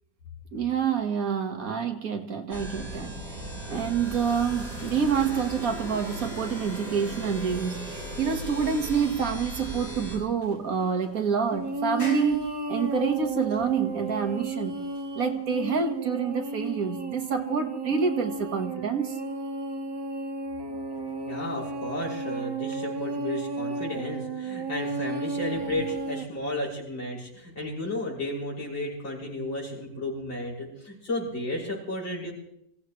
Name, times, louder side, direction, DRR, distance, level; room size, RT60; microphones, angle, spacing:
voice 1, 0.5-3.2 3.6-14.8 15.1-19.2, right 6 dB, 50° right, 1.7 m, -27 dB
sound 1, 2.5-10.2, right 1 dB, 30° right, 7.5 m, -38 dB
sound 2, 3.6-16.1, left 1 dB, 45° left, 8.0 m, -46 dB
sound 3, 11.5-26.2, right 2 dB, 15° right, 1.3 m, -33 dB
voice 2, 21.2-32.3, left 1 dB, 75° left, 6.9 m, -33 dB
26.5 x 15.5 x 3.2 m
omnidirectional pair, 2.1 m